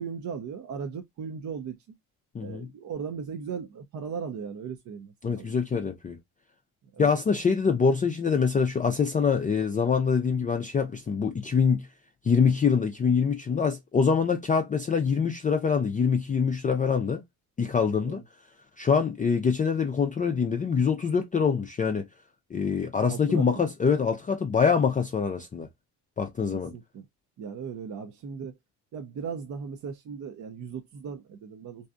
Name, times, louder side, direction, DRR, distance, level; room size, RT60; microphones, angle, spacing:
voice 1, 0.0-1.8 2.4-5.5 6.9-7.1 18.0-18.2 23.0-23.4 26.5-27.1 27.4-28.5 28.9-31.9, right 6 dB, 45° right, 0.5 m, -37 dB
voice 2, 2.3-2.7 5.2-6.2 7.0-11.9 12.2-17.2 17.6-18.2 18.8-22.1 22.5-25.7 26.2-26.7, left 6 dB, 20° left, 0.4 m, -25 dB
2.7 x 2.2 x 2.4 m
supercardioid pair, 75°, 40 cm